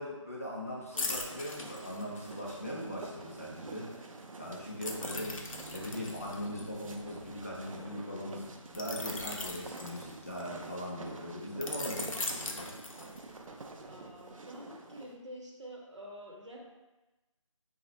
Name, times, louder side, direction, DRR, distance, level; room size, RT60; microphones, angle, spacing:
voice 1, 0.0-4.1 4.4-8.4 8.7-12.7, equal, 30° left, -5 dB, 0.4 m, -40 dB
sound 1, 0.9-15.2, right 3 dB, 85° right, 0.4 m, -47 dB
sound 2, 1.0-2.5 4.8-7.6 8.7-10.6 11.6-13.4 13.9-14.1, left 3 dB, 85° left, 0.5 m, -40 dB
sound 3, 5.0-9.3 9.8-10.0 10.8-11.3, right 4 dB, 25° right, 0.5 m, -58 dB
voice 2, 13.9-16.6, equal, 65° right, -2 dB, 0.7 m, -47 dB
3.3 x 2.0 x 2.7 m, 1.1 s
figure-of-eight pair, 170°, 17 cm